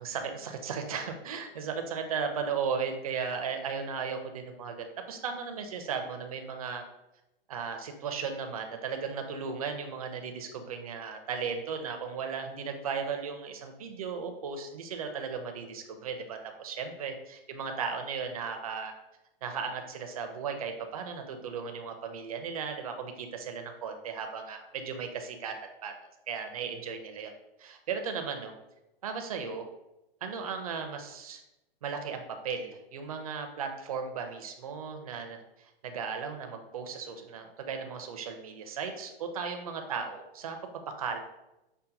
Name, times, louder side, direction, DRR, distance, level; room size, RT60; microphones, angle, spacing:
voice 1, 0.0-6.8 7.5-18.9 19.4-25.6 25.8-27.3 27.6-28.5 29.0-29.7 30.2-31.4 31.8-40.6 40.9-41.2, right 6 dB, 40° right, 5 dB, 0.4 m, -36 dB
5.6 x 2.1 x 2.6 m, 0.92 s
hypercardioid pair, 175°, 30 cm